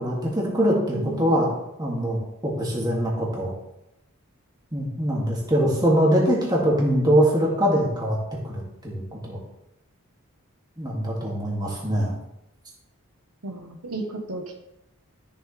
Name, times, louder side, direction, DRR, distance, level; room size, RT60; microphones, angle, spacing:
voice 1, 0.0-1.5 1.8-3.5 4.7-8.2 8.4-9.4 10.8-12.1, equal, 20° right, -3 dB, 2.4 m, -23 dB
voice 2, 0.9-1.6 13.4-14.6, right 2 dB, 85° right, 4 dB, 1.2 m, -34 dB
13.0 x 7.1 x 3.4 m, 0.86 s
head